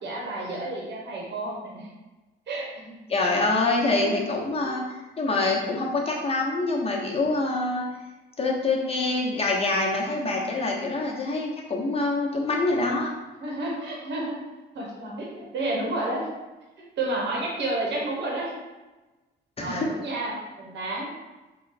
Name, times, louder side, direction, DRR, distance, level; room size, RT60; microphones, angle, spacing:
voice 1, 0.0-1.9 2.5-2.9 3.8-4.3 4.6-4.8 13.4-14.4 14.7-16.3 17.0-18.6 19.6-21.1, right 2 dB, 65° right, -3 dB, 1.0 m, -31 dB
voice 2, 3.1-7.8 8.4-13.1 19.6-19.9, left 2 dB, 30° left, -2 dB, 0.9 m, -25 dB
3.8 x 2.2 x 4.0 m, 1.1 s
cardioid pair, 90°, 20 cm